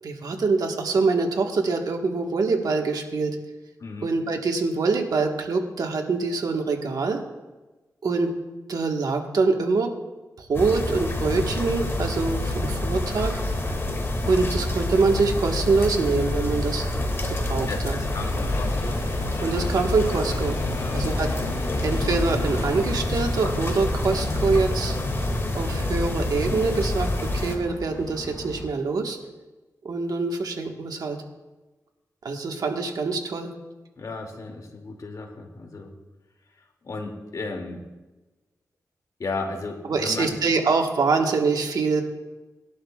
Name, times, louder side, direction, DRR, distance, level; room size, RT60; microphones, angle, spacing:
voice 1, 0.0-3.4 4.0-7.2 8.0-8.3 8.7-9.9 10.4-13.4 14.2-16.9 17.3-18.0 19.4-20.6 20.9-21.3 21.8-24.9 25.5-29.2 29.8-31.2 32.2-33.5 39.8-42.0, right 4 dB, 80° right, 2 dB, 1.4 m, -24 dB
sound 1, 10.5-27.6, left 1 dB, 40° left, 2.2 m, -27 dB
voice 2, 17.7-19.0 20.8-21.0 34.0-35.9 36.8-37.8 39.2-40.4, left 3 dB, 65° left, 1 dB, 2.4 m, -34 dB
sound 2, 18.0-28.7, left 3 dB, 85° left, 2.6 m, -36 dB
18.5 x 11.5 x 2.4 m, 1.2 s
cardioid pair, 55°, 6 cm